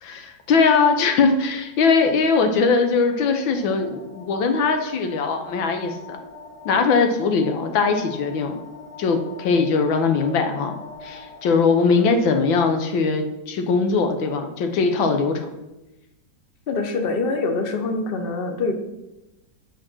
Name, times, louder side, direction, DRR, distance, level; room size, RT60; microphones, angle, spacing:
voice 1, 0.0-6.2 6.6-8.6 9.0-15.5, left 4 dB, 90° left, 6 dB, 1.8 m, -21 dB
sound 1, 1.6-12.2, left 4 dB, 65° left, 1.9 m, -43 dB
voice 2, 16.7-18.7, left 3 dB, 40° left, 6 dB, 0.9 m, -24 dB
8.5 x 5.9 x 6.1 m, 0.98 s
omnidirectional pair, 2.0 m